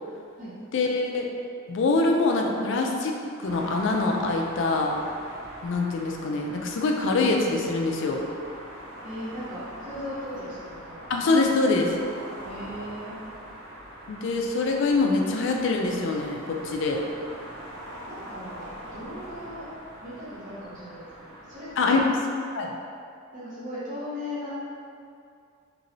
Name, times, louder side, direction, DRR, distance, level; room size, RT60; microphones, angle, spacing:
voice 1, 0.7-1.3 1.7-5.0 5.6-8.2 11.1-11.9 14.1-17.0 21.8-22.0 22.5-22.7, left 3 dB, 60° left, 1 dB, 0.4 m, -24 dB
sound 1, 3.4-22.1, equal, 80° right, 0.8 m, -42 dB
voice 2, 9.0-11.1 12.5-13.2 18.1-18.7 18.9-19.7 20.0-22.0 23.3-24.5, left 1 dB, 40° right, -10 dB, 0.8 m, -37 dB
3.0 x 3.0 x 2.6 m, 2.4 s
head